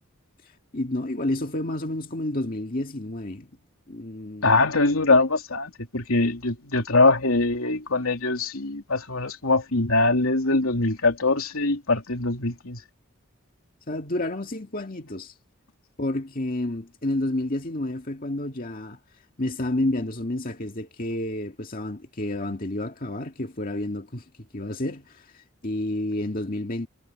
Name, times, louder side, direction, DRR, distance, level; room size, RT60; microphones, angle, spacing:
voice 1, 0.7-3.5 3.9-4.7 13.9-15.3 16.0-19.0 19.4-24.2 24.5-26.9, left 1 dB, 40° left, 2.1 m, -30 dB
voice 2, 4.4-12.8, left 3 dB, 80° left, 3.2 m, -22 dB
head